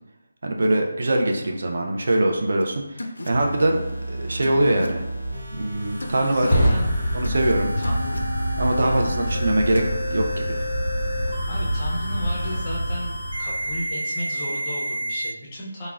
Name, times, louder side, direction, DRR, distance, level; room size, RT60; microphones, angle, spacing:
voice 1, 0.4-5.0 5.5-6.5 7.1-7.7 8.6-9.8 10.1-10.6, right 1 dB, 50° right, 1 dB, 0.3 m, -23 dB
sound 1, 2.6-2.7 3.0-3.3 4.4-4.9 6.0-6.6 7.2-7.5 7.8-8.2 9.8-10.0, left 1 dB, 80° left, 0.3 m, -34 dB
sound 2, 3.3-15.3, right 1 dB, 85° right, 0.7 m, -32 dB
Fire, 4.9-13.9, equal, 10° right, 0.9 m, -26 dB
voice 2, 6.2-6.9 7.8-8.2 8.8-9.4 11.5-15.9, equal, 20° left, -5 dB, 0.4 m, -34 dB
3.3 x 2.0 x 2.2 m, 0.91 s
figure-of-eight pair, 175°, 0 cm